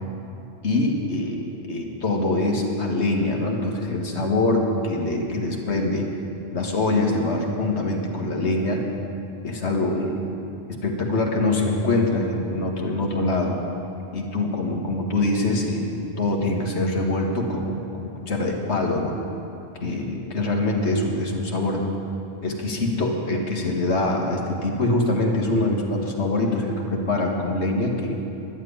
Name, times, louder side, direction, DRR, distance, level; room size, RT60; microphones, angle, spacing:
voice 1, 0.6-6.1 6.5-8.8 9.4-10.3 10.7-13.6 14.1-19.2 19.8-21.8 22.4-28.2, left 2 dB, 80° left, 1 dB, 1.8 m, -24 dB
11.0 x 7.5 x 9.9 m, 2.7 s
omnidirectional pair, 1.1 m